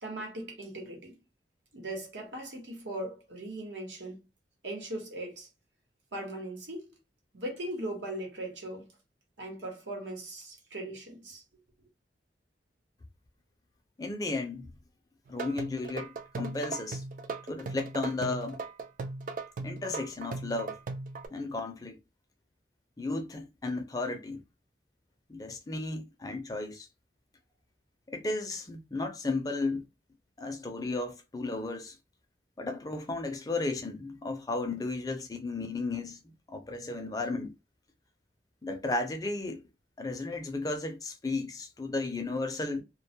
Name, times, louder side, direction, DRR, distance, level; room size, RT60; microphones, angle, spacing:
voice 1, 0.0-1.2 1.7-4.2 4.6-5.5 6.1-6.9 7.3-8.9 9.4-11.4, right 1 dB, 90° right, 1.0 m, -39 dB
voice 2, 14.0-14.7 15.3-17.0 17.5-18.6 19.6-20.8 21.3-22.0 23.0-24.4 25.3-26.9 28.1-29.8 30.4-31.9 32.6-37.5 38.6-39.6 40.0-42.8, left 3 dB, 20° left, 0.4 m, -34 dB
sound 1, 15.3-21.3, right 3 dB, 45° right, 0.3 m, -38 dB
2.2 x 2.1 x 2.7 m
head